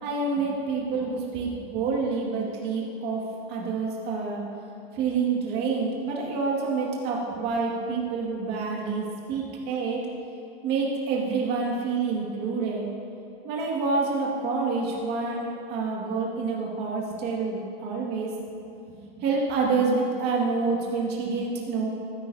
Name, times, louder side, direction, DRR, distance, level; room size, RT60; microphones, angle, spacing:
voice 1, 0.0-3.2 3.5-4.4 4.9-10.0 10.6-12.9 13.4-18.3 18.9-21.9, right 4 dB, 35° right, -3 dB, 2.1 m, -27 dB
15.0 x 12.0 x 2.8 m, 2.9 s
supercardioid pair, 165°, 30 cm